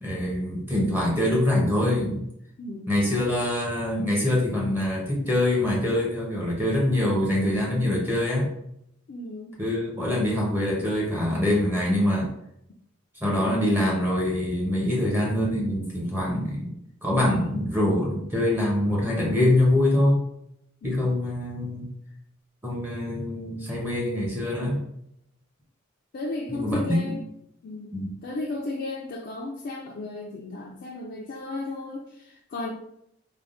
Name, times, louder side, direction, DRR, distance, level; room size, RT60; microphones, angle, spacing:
voice 1, 0.0-2.2 2.9-8.5 9.6-12.3 13.2-16.7 17.0-20.2 20.8-21.9 22.6-24.8 26.5-27.0 27.9-28.1, left 1 dB, 10° right, -4 dB, 0.7 m, -24 dB
voice 2, 2.6-3.0 9.1-9.5 20.8-21.1 26.1-27.2 27.6-27.9 28.2-32.7, left 2 dB, 50° left, -1 dB, 0.3 m, -34 dB
3.4 x 2.1 x 2.4 m, 0.77 s
head